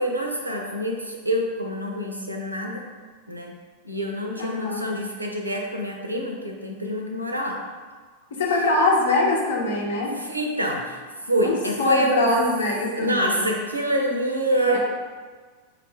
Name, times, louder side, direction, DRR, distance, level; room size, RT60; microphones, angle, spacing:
voice 1, 0.0-2.8 3.3-3.5 3.8-7.6 10.2-11.0 11.3-12.3 12.9-14.8, equal, 85° right, 1 dB, 0.5 m, -26 dB
voice 2, 4.4-4.8 8.3-10.1 11.4-13.5 14.7-14.8, left 2 dB, 65° left, -2 dB, 0.8 m, -23 dB
4.6 x 2.5 x 3.3 m, 1.5 s
figure-of-eight pair, 90°, 0 cm